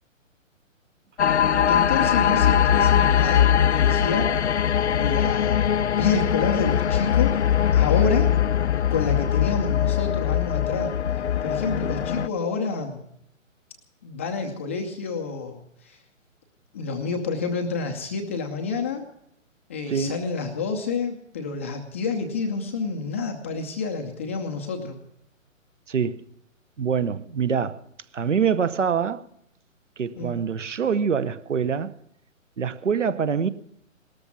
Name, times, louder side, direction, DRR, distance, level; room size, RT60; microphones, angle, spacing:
sound 1, 1.2-12.3, left 9 dB, 60° left, 0.5 m, -21 dB
voice 1, 1.7-4.3 5.0-7.4 7.7-8.3 8.9-10.9 11.4-13.0 14.0-16.0 16.7-19.1 19.7-25.0 30.2-30.3, left 4 dB, 10° left, 0.5 m, -29 dB
voice 2, 25.9-26.2 26.8-27.8 28.1-29.2 30.0-32.0 32.6-33.5, right 6 dB, 65° right, 1.0 m, -25 dB
18.5 x 13.5 x 5.9 m
figure-of-eight pair, 135°, 40 cm